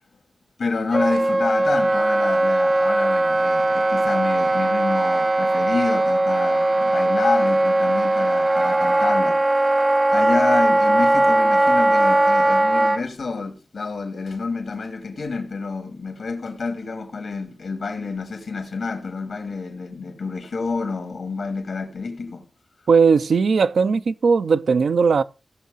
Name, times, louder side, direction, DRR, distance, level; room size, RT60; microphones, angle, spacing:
voice 1, 0.6-9.7 10.1-22.4, left 4 dB, 85° left, 2.7 m, -28 dB
Wind instrument woodwind instrument, 0.9-13.0, right 2 dB, 35° right, 0.7 m, -19 dB
voice 2, 22.9-25.2, right 5 dB, 85° right, 0.5 m, -18 dB
16.5 x 6.3 x 4.1 m
cardioid pair, 45°, 0 cm